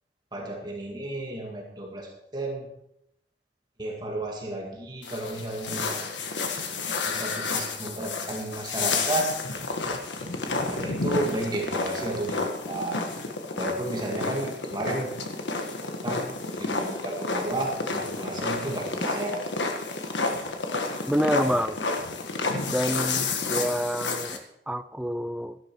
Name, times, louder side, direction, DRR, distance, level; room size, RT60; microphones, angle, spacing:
voice 1, 0.3-2.7 3.8-6.1 6.5-6.7 7.1-9.3 10.7-13.1 13.6-15.1 16.0-19.7, right 1 dB, 25° right, 0 dB, 2.0 m, -32 dB
sound 1, 5.0-24.4, left 3 dB, 80° left, 1.6 m, -30 dB
voice 2, 21.1-21.8 22.7-25.6, equal, 5° right, 12 dB, 0.4 m, -28 dB
13.0 x 11.5 x 4.7 m, 0.81 s
head